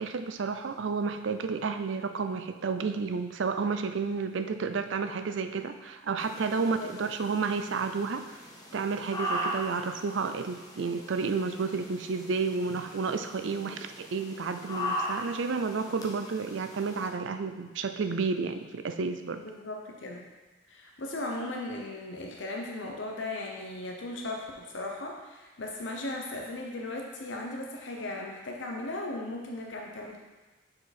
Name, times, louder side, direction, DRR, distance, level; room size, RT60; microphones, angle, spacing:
voice 1, 0.0-8.4 8.7-19.4, right 4 dB, 70° right, 8 dB, 0.4 m, -31 dB
sound 1, 6.2-17.1, equal, 20° left, 0.8 m, -39 dB
voice 2, 6.6-6.9 19.4-20.2 20.7-30.2, left 2 dB, 70° left, 0 dB, 0.8 m, -37 dB
6.6 x 4.7 x 4.2 m, 1.2 s
head